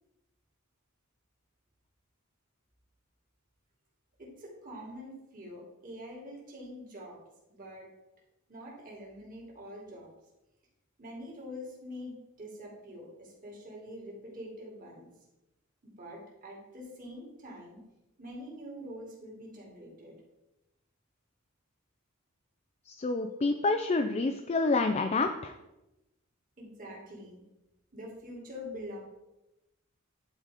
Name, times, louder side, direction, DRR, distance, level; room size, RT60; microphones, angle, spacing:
voice 1, 4.2-7.1 7.5-7.8 8.5-10.1 11.0-15.1 15.8-17.8 18.2-20.2 26.6-27.4 27.9-29.0, equal, 40° right, -3 dB, 2.7 m, -45 dB
voice 2, 22.9-25.5, left 3 dB, 30° left, 6 dB, 0.4 m, -28 dB
11.0 x 4.0 x 4.9 m, 0.96 s
head